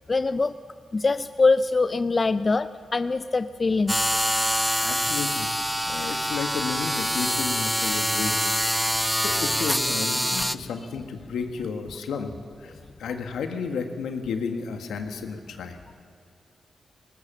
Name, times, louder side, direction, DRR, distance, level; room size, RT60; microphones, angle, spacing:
voice 1, 0.1-0.5 0.9-3.9, left 3 dB, 40° left, 13 dB, 0.5 m, -23 dB
sound 1, 3.9-10.5, equal, ahead, 0.7 m, -25 dB
voice 2, 4.8-5.5 5.8-8.4 9.2-12.3 12.6-12.7 13.0-15.8, left 5 dB, 85° left, 5 dB, 1.6 m, -32 dB
19.0 x 18.5 x 7.5 m, 2.1 s
supercardioid pair, 50°, 0 cm